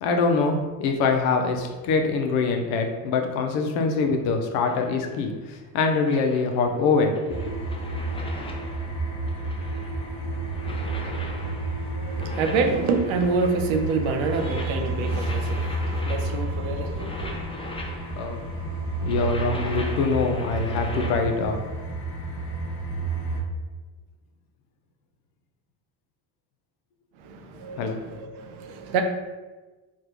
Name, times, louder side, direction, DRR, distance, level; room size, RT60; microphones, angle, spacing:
voice 1, 0.0-7.4 18.2-18.7 19.0-21.6 27.8-28.0, left 4 dB, 90° left, 4 dB, 0.6 m, -24 dB
sound 1, 4.7-5.2 6.0-21.2, left 2 dB, 15° left, 0.4 m, -40 dB
sound 2, 7.3-23.4, right 2 dB, 50° left, 0.9 m, -30 dB
voice 2, 12.0-17.5 27.2-29.0, right 4 dB, 75° right, 5 dB, 0.6 m, -27 dB
3.4 x 2.3 x 2.9 m, 1.3 s
supercardioid pair, 60°, 48 cm